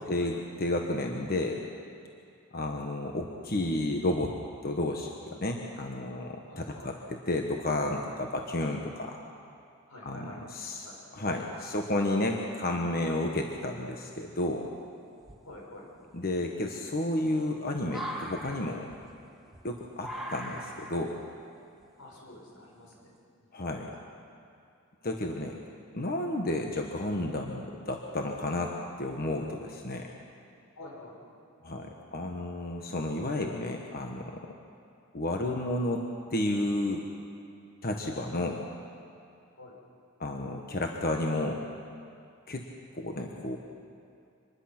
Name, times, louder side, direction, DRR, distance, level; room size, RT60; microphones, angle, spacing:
voice 1, 0.0-1.6 2.5-4.3 4.6-9.2 10.0-10.3 10.5-10.8 11.1-14.7 16.1-18.9 19.6-21.2 23.5-23.9 25.0-25.5 25.9-28.7 29.0-30.1 31.6-34.5 35.1-36.0 36.3-37.1 37.8-38.6 40.2-41.6 42.5-42.6 42.9-43.6, left 1 dB, 45° left, 2 dB, 1.3 m, -31 dB
voice 2, 6.5-7.0 9.9-11.0 15.4-15.9 22.0-23.1 23.4-23.8 30.8-31.2 39.6-39.8, left 1 dB, 85° left, -2 dB, 6.0 m, -48 dB
sound 1, 13.5-13.9 14.6-14.7 15.2-23.2, equal, ahead, 1.8 m, -43 dB
25.0 x 20.5 x 6.0 m, 2.5 s
head